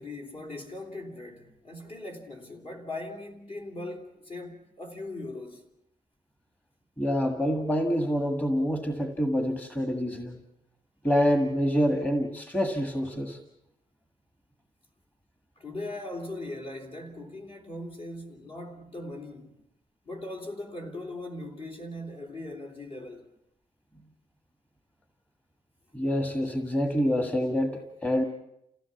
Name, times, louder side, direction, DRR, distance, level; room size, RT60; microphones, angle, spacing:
voice 1, 0.0-5.7 15.6-19.6 20.0-23.3, left 2 dB, 45° left, 3.3 m, -39 dB
voice 2, 7.0-10.4 11.0-13.4 25.9-28.2, equal, 10° left, 1.7 m, -26 dB
29.0 x 16.5 x 7.2 m
wide cardioid pair, 150°, 14 cm